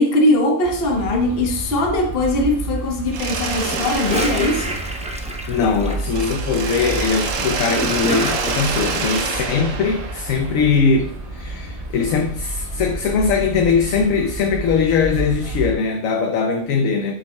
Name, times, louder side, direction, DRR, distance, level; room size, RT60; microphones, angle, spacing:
voice 1, 0.0-4.8, left 1 dB, 45° left, 1.2 m, -20 dB
sound 1, 0.6-15.7, right 2 dB, 40° right, 1.6 m, -31 dB
Mechanisms, 3.1-5.7 6.1-10.9, right 4 dB, 65° right, 1.2 m, -27 dB
Gurgling / Toilet flush, 3.5-8.9, equal, 10° right, 0.4 m, -29 dB
voice 2, 5.5-17.2, left 5 dB, 70° left, 1.1 m, -20 dB
11.5 x 6.2 x 2.3 m
omnidirectional pair, 1.5 m